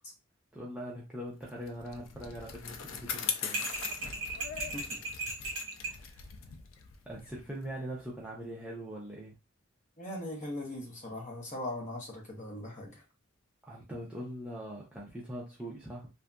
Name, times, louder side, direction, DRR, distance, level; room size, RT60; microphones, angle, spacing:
voice 1, 0.5-3.7 5.8-6.3 7.1-9.3 13.6-16.1, equal, 5° right, -4 dB, 0.5 m, -42 dB
Bicycle, 1.5-8.2, left 7 dB, 75° left, 0.4 m, -41 dB
sound 1, 3.5-6.0, right 2 dB, 60° right, 1.1 m, -36 dB
voice 2, 10.0-13.0, left 1 dB, 35° left, -1 dB, 0.8 m, -40 dB
2.6 x 2.5 x 2.2 m, 0.27 s
head